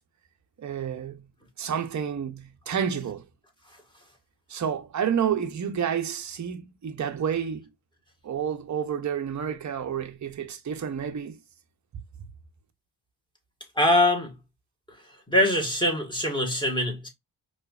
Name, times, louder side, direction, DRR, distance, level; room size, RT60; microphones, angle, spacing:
voice 1, 0.6-1.3 1.6-3.3 4.5-7.7 8.2-11.4, right 8 dB, 40° right, 0.7 m, -30 dB
voice 2, 13.7-14.3 14.9-15.0 15.3-17.1, left 1 dB, 10° left, 1.4 m, -23 dB
4.6 x 2.5 x 2.4 m
cardioid pair, 70°, 47 cm